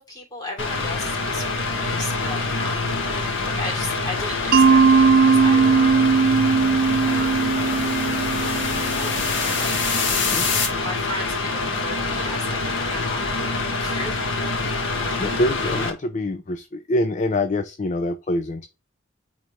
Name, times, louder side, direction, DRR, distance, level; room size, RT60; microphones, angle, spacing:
voice 1, 0.0-3.0 3.4-6.2 7.1-7.5 8.9-9.7 10.8-14.2, left 1 dB, 20° left, 3.2 m, -35 dB
Mechanical fan, 0.6-15.9, left 3 dB, 90° left, 1.6 m, -26 dB
Mallet percussion, 4.5-9.3, right 5 dB, 50° right, 0.4 m, -18 dB
sound 1, 4.7-10.7, left 5 dB, 65° left, 2.0 m, -28 dB
voice 2, 15.2-18.7, left 1 dB, 40° left, 0.5 m, -25 dB
8.7 x 3.9 x 3.2 m
head